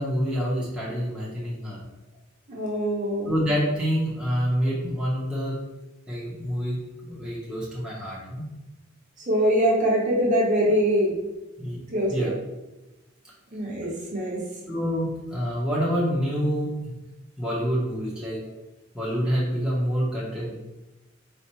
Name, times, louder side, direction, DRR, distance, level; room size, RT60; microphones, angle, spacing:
voice 1, 0.0-1.8 3.3-5.6 6.1-6.8 7.1-8.5 11.6-11.8 12.1-12.3 14.7-16.9 17.4-18.4 18.9-20.6, equal, 5° right, -8 dB, 0.9 m, -27 dB
voice 2, 2.5-3.3 9.3-11.1 11.9-12.3 13.5-14.4, equal, 35° right, -4 dB, 1.0 m, -23 dB
4.2 x 2.3 x 4.5 m, 1.1 s
head